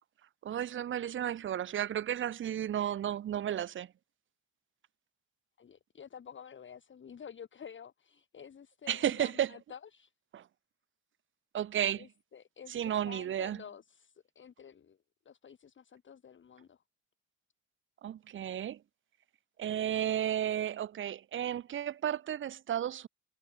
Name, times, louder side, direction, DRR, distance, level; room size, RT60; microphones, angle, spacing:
voice 1, 0.4-3.9 8.9-9.5 10.3-10.4 11.5-12.1 12.7-13.6 18.0-18.8 19.6-23.1, right 10 dB, 40° right, 0.5 m, -33 dB
voice 2, 5.6-10.1 11.9-15.0 15.2-16.8, left 7 dB, 40° left, 1.4 m, -50 dB
cardioid pair, 90°, 30 cm